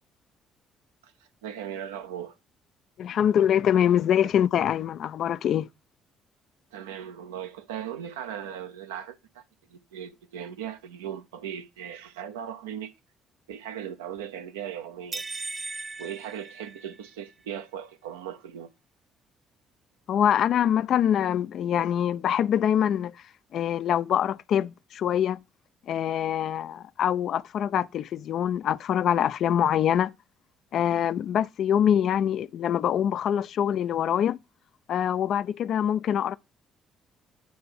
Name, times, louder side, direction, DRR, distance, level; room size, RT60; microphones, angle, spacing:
voice 1, 1.4-2.4 6.7-9.4 9.7-12.9 13.5-15.2 16.0-18.7, right 9 dB, 75° right, 0.6 m, -38 dB
voice 2, 3.0-5.7 20.1-23.1 23.5-25.4 25.9-30.1 30.7-34.4 34.9-36.4, left 9 dB, 55° left, 0.3 m, -24 dB
sound 1, 15.1-17.3, right 3 dB, 30° right, 0.3 m, -37 dB
8.6 x 3.3 x 5.8 m
figure-of-eight pair, 45°, 0 cm